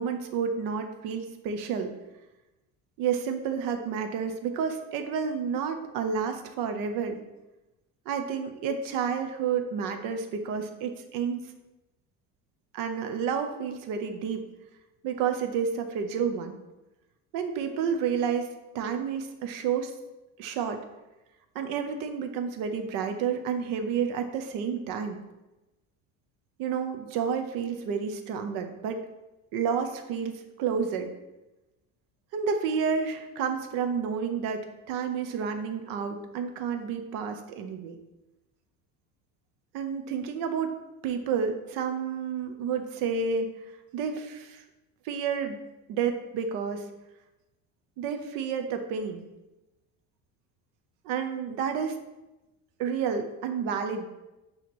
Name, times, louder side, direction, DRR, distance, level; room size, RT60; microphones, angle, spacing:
voice 1, 0.0-1.9 3.0-7.2 8.1-11.4 12.7-14.4 15.0-16.6 17.3-18.5 18.7-19.9 20.4-20.8 21.5-25.2 26.6-29.0 29.5-31.1 32.3-34.6 34.9-38.0 39.7-40.7 41.0-43.5 43.9-44.6 45.0-45.6 45.9-46.9 48.0-49.2 51.0-52.0 52.8-54.1, right 6 dB, 65° right, 6 dB, 0.9 m, -30 dB
8.9 x 3.0 x 6.2 m, 1.0 s
cardioid pair, 170°, 35 cm